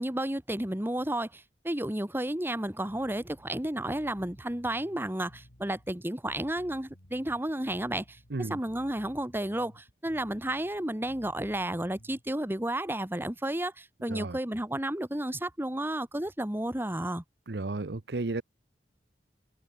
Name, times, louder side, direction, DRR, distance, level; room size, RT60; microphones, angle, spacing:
voice 1, 0.0-17.2, right 1 dB, 15° right, 1.5 m, -32 dB
Bass guitar, 2.9-12.3, equal, 80° left, 5.1 m, -56 dB
voice 2, 17.5-18.4, right 2 dB, 70° right, 0.8 m, -33 dB
head